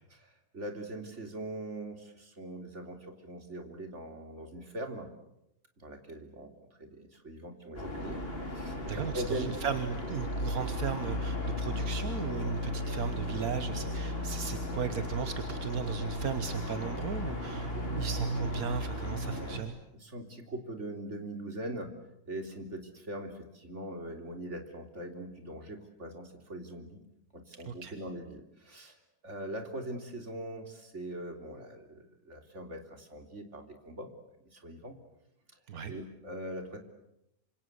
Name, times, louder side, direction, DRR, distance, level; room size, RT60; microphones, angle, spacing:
voice 1, 0.1-5.1 5.8-6.5 6.8-9.6 17.7-18.1 19.4-19.5 20.0-21.9 22.3-27.0 27.3-34.1 34.5-35.0 35.8-36.8, right 1 dB, 50° right, 5 dB, 3.7 m, -41 dB
sound 1, 7.8-19.6, left 1 dB, 40° left, 4.9 m, -35 dB
voice 2, 8.9-19.8 27.7-27.9 35.7-35.9, right 7 dB, 75° right, 10 dB, 1.7 m, -36 dB
27.5 x 26.5 x 8.0 m, 0.84 s
omnidirectional pair, 1.6 m